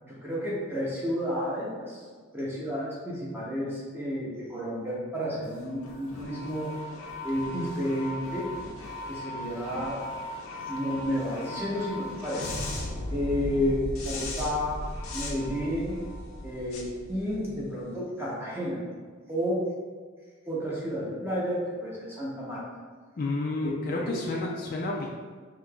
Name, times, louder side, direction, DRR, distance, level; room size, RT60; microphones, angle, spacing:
voice 1, 0.0-2.1 2.3-6.7 7.2-8.5 9.1-10.1 10.7-12.7 13.1-14.8 15.1-16.0 16.4-18.8 19.3-19.7 20.5-22.7 23.8-24.2, equal, 10° right, -6 dB, 0.7 m, -31 dB
sound 1, 5.4-17.8, left 1 dB, 85° left, 0.6 m, -37 dB
voice 2, 23.2-25.1, left 2 dB, 45° left, -2 dB, 0.3 m, -30 dB
5.0 x 2.8 x 2.3 m, 1.5 s
head